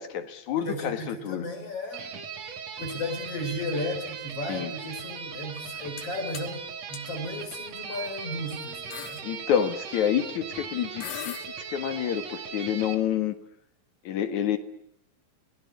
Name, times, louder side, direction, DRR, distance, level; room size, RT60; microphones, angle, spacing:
voice 1, 0.0-1.4 4.5-4.7 9.2-11.4 11.7-13.4 14.0-14.6, left 9 dB, 60° left, 8 dB, 2.9 m, -28 dB
voice 2, 0.6-2.2 2.8-6.6 6.9-9.3, left 1 dB, 45° left, 5 dB, 4.8 m, -34 dB
sound 1, 1.9-13.0, right 6 dB, 55° right, 3.0 m, -38 dB
sound 2, 5.6-6.1 6.3-6.5 6.9-7.0 7.9-8.1 8.5-8.6 8.9-9.2 10.6-10.7 11.0-11.5, left 12 dB, 85° left, 2.9 m, -38 dB
28.5 x 19.0 x 8.2 m, 0.76 s
omnidirectional pair, 3.9 m